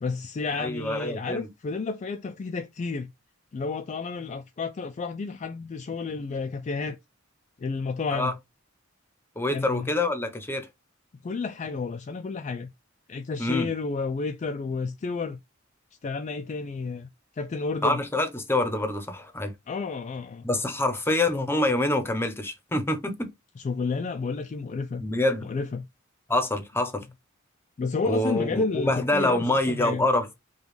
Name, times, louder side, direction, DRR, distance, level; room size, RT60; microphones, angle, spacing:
voice 1, 0.0-3.1 3.5-7.0 7.6-8.4 9.5-9.9 11.2-12.7 13.1-15.4 16.0-18.0 19.7-20.5 23.6-25.0 25.4-25.9 27.8-30.0, left 4 dB, 35° left, 0.3 m, -31 dB
voice 2, 0.6-1.5 8.1-8.3 9.4-10.7 13.4-13.7 17.8-19.5 20.4-23.3 25.0-25.5 26.3-27.0 28.0-30.3, left 2 dB, 10° left, 0.7 m, -26 dB
5.0 x 2.3 x 3.2 m
head